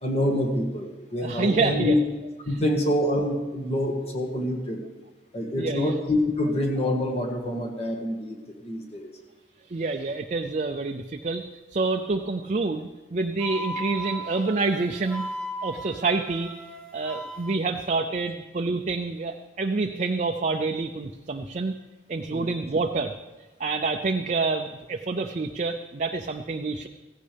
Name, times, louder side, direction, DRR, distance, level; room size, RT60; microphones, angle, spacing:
voice 1, 0.0-2.0 2.4-4.8 5.3-9.1 22.3-22.5, left 1 dB, 35° left, 1 dB, 1.8 m, -26 dB
voice 2, 1.2-1.9 2.5-2.6 5.6-5.9 9.7-11.4 11.7-15.3 15.6-16.5 16.9-21.7 22.1-23.1 23.6-26.9, right 3 dB, 40° right, 5 dB, 0.5 m, -27 dB
Wind instrument woodwind instrument, 13.4-17.6, equal, 5° left, 1.0 m, -36 dB
15.5 x 15.0 x 3.4 m, 1.2 s
head